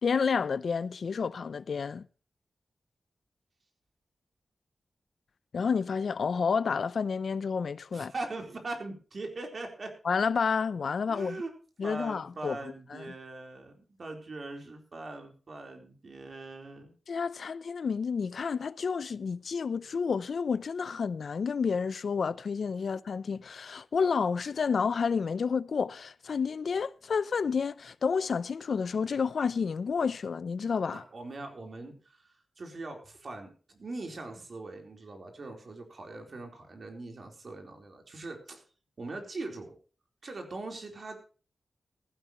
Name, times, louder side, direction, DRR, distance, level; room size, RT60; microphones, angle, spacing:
voice 1, 0.0-2.1 5.5-8.1 10.0-11.4 11.8-12.6 12.9-13.1 17.1-31.0, left 5 dB, 70° left, 0.6 m, -30 dB
voice 2, 7.9-9.9 11.1-11.5 11.8-16.9 22.8-22.9 30.9-38.6 39.0-39.7 40.2-41.2, right 2 dB, 50° right, 4.1 m, -41 dB
15.5 x 15.0 x 3.1 m
wide cardioid pair, 125°, 0 cm